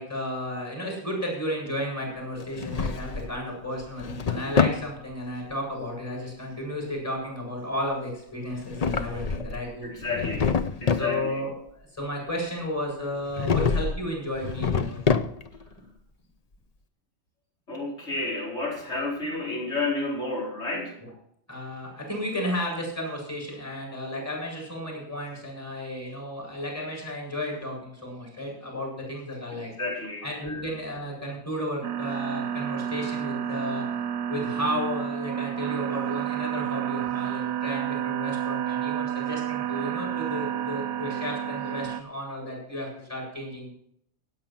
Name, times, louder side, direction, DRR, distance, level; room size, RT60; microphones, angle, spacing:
voice 1, 0.0-10.3 10.9-15.0 15.8-15.9 21.0-21.1 21.5-29.7 30.2-33.8 34.3-43.7, left 1 dB, 15° left, -2 dB, 7.4 m, -33 dB
Drawer open or close, 2.4-3.4 3.8-4.9 8.5-9.6 10.0-11.1 13.3-14.0 14.4-15.6, left 5 dB, 40° left, 0.7 m, -26 dB
voice 2, 9.8-10.5 10.8-11.4 17.7-21.0 29.5-30.6, left 3 dB, 75° left, -3 dB, 4.9 m, -31 dB
sound 1, 31.8-42.0, right 10 dB, 75° right, 1.0 m, -30 dB
17.0 x 8.9 x 5.9 m, 0.71 s
omnidirectional pair, 1.2 m